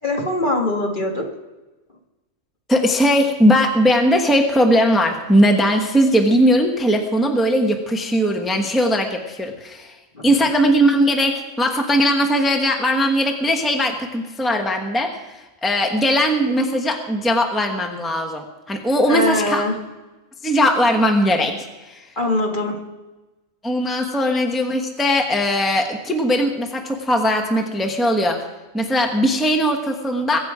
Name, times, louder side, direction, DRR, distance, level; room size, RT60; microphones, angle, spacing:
voice 1, 0.0-1.3 10.1-10.2 19.1-19.7 22.2-22.8 24.2-24.4, left 1 dB, 40° left, 0 dB, 1.8 m, -22 dB
voice 2, 2.7-10.0 10.2-19.6 20.4-21.5 21.9-22.0 23.6-28.4 28.7-30.4, equal, ahead, 3 dB, 1.2 m, -19 dB
22.5 x 8.7 x 4.9 m, 1.1 s
omnidirectional pair, 1.3 m